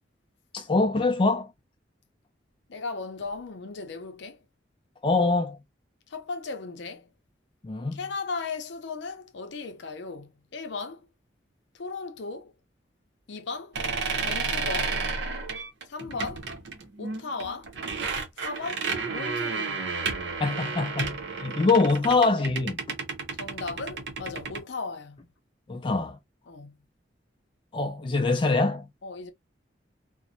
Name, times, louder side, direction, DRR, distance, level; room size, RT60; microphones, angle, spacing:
voice 1, 0.5-1.5 5.0-5.6 7.6-8.0 20.4-22.8 25.7-26.2 27.7-28.9, left 3 dB, 25° left, 0.3 m, -24 dB
voice 2, 2.7-4.4 6.1-7.1 7.9-11.1 11.7-12.5 13.3-13.8 14.2-15.0 15.9-16.5 17.0-17.7 18.4-19.9 23.3-25.3 26.5-26.8 29.0-29.3, left 4 dB, 75° left, 0.6 m, -36 dB
sound 1, 13.7-24.6, right 4 dB, 70° right, 0.7 m, -32 dB
2.6 x 2.1 x 2.6 m
head